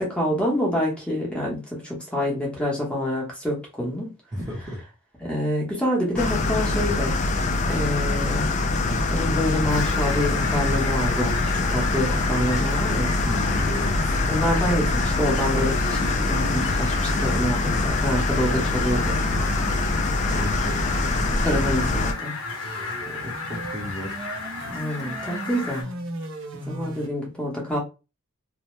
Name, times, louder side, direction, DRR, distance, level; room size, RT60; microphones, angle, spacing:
voice 1, 0.0-4.1 5.2-7.1 7.7-8.5 9.1-13.1 14.3-19.4 21.4-22.3 24.7-26.0 26.7-27.8, equal, 5° left, 0.9 m, -27 dB
voice 2, 4.3-4.8 13.2-14.2 20.3-20.8 23.1-24.2, left 1 dB, 20° right, 0.7 m, -34 dB
sound 1, 6.2-22.1, left 2 dB, 35° left, 0.3 m, -24 dB
Fowl, 9.7-25.8, left 4 dB, 80° left, 0.8 m, -34 dB
sound 2, 15.2-27.1, right 1 dB, 60° right, 0.6 m, -38 dB
2.7 x 2.1 x 3.1 m
head